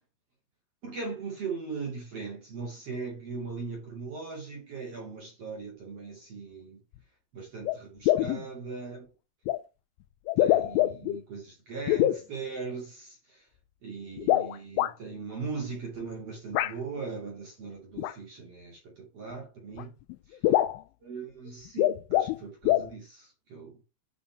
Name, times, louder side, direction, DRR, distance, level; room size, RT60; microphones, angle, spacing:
voice 1, 0.8-6.8 7.3-9.1 10.4-13.4 13.8-19.9 20.3-20.4 21.0-23.8, right 4 dB, 45° right, 2.3 m, -39 dB
sound 1, 6.9-7.0 7.6-7.8 8.1-8.4 9.5-9.6 10.3-11.2 11.9-12.2 14.2-14.9 16.6-16.7 18.0-18.1 19.3-19.4 19.8-19.9 20.1-20.2 20.4-20.8 21.7-22.4 22.7-22.9, left 14 dB, 85° left, 3.0 m, -24 dB
10.0 x 4.2 x 4.5 m
omnidirectional pair, 5.8 m